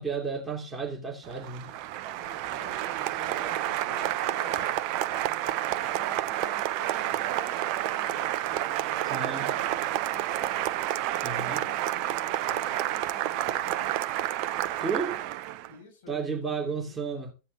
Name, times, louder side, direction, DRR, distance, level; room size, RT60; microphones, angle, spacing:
voice 1, 0.0-1.7 9.1-9.5 11.2-11.6 14.8-15.1 16.1-17.3, right 5 dB, 10° right, 3.0 m, -32 dB
Applause, 1.2-15.7, right 13 dB, 45° right, 0.6 m, -30 dB
voice 2, 2.1-4.9 5.4-10.7 11.5-14.0 14.7-15.3 15.7-17.0, left 3 dB, 50° left, 7.0 m, -49 dB
15.5 x 9.5 x 2.9 m
figure-of-eight pair, 90°, 0 cm